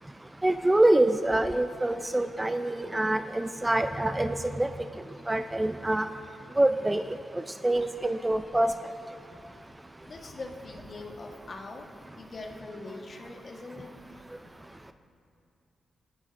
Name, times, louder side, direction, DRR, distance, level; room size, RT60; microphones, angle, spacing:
voice 1, 0.4-4.7 5.3-6.1 6.6-7.0 7.6-8.7, right 1 dB, 15° right, 9 dB, 0.4 m, -25 dB
voice 2, 10.0-11.9 12.1-14.2, left 2 dB, 50° left, 2 dB, 1.3 m, -42 dB
19.0 x 9.4 x 2.6 m, 2.6 s
cardioid pair, 60°, 0 cm